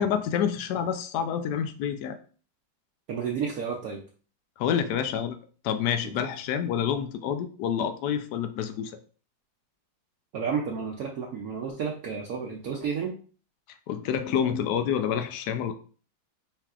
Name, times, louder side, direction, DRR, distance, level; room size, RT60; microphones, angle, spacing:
voice 1, 0.0-2.2 4.6-5.4 5.6-9.0 13.9-15.7, left 8 dB, 75° left, 9 dB, 1.1 m, -28 dB
voice 2, 3.1-4.0 6.0-6.2 10.3-13.2, right 6 dB, 65° right, -1 dB, 1.0 m, -31 dB
5.5 x 3.5 x 2.4 m, 0.41 s
omnidirectional pair, 2.0 m